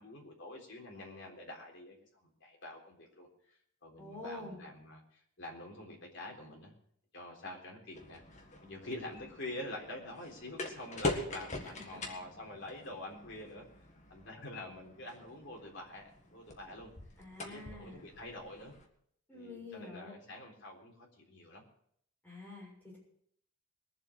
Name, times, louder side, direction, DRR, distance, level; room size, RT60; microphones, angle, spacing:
voice 1, 0.0-2.0 2.2-6.7 7.1-13.7 14.1-16.9 17.4-18.8 19.3-21.6, left 1 dB, 55° left, -1 dB, 3.7 m, -47 dB
voice 2, 4.0-4.6 11.6-12.0 17.2-18.0 19.3-20.2 22.2-23.0, left 2 dB, 10° left, -5 dB, 6.9 m, -48 dB
sound 1, 7.9-18.9, left 2 dB, 35° left, 1.7 m, -43 dB
21.0 x 7.5 x 6.3 m, 0.67 s
head